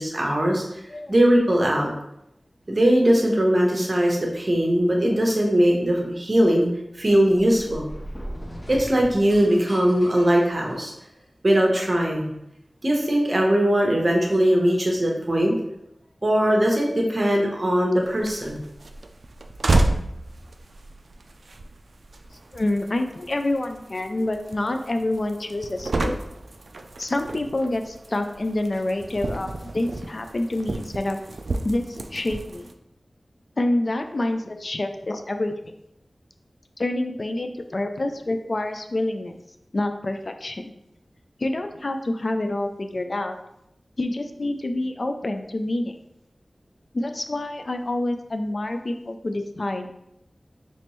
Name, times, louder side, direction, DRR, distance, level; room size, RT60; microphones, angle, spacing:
voice 1, 0.0-0.8 1.1-1.9 2.7-6.7 6.9-7.9 8.7-10.9 11.4-12.3 12.8-15.6 16.2-18.6, equal, 45° right, 0 dB, 0.9 m, -20 dB
sound 1, 7.2-11.2, equal, 20° left, 0.8 m, -38 dB
sound 2, 18.0-32.7, right 2 dB, 80° right, 0.3 m, -31 dB
voice 2, 22.5-26.2 27.0-31.2 31.6-32.7 33.6-35.5 36.8-39.4 39.7-40.7 41.4-43.4 44.0-46.0 46.9-49.9, left 1 dB, 60° left, 6 dB, 0.3 m, -27 dB
4.3 x 3.1 x 3.0 m, 0.83 s
wide cardioid pair, 60°, 0 cm